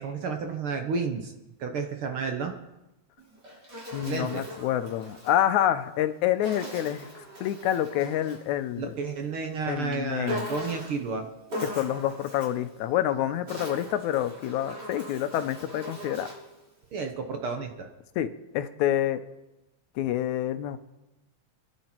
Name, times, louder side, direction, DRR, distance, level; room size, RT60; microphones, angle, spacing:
voice 1, 0.0-1.3 1.6-2.5 4.1-4.5 8.8-11.3 16.9-17.9, right 5 dB, 60° right, 5 dB, 1.6 m, -31 dB
Insect, 3.2-5.4 6.4-8.5 10.3-11.1 11.5-12.6 13.3-16.5, equal, 35° right, 3.7 m, -39 dB
voice 2, 3.9-7.1 7.4-8.9 9.7-10.5 11.6-16.3 18.2-19.3 20.0-20.8, left 11 dB, 85° left, 11 dB, 2.2 m, -27 dB
25.0 x 10.5 x 4.5 m, 0.97 s
omnidirectional pair, 3.3 m